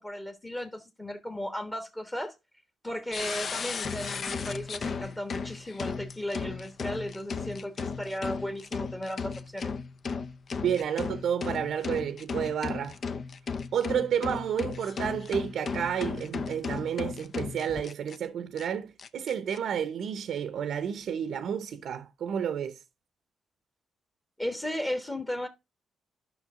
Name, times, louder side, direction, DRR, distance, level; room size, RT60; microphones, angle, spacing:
voice 1, 0.0-2.3 2.8-9.7 24.4-25.5, left 1 dB, 15° left, 1.3 m, -35 dB
sound 1, 3.1-18.2 18.6-18.7 19.0-19.6, left 5 dB, 45° left, 0.6 m, -35 dB
voice 2, 10.6-13.0 13.7-22.8, right 8 dB, 70° right, 0.8 m, -31 dB
11.5 x 6.0 x 3.7 m
cardioid pair, 130°, 0 cm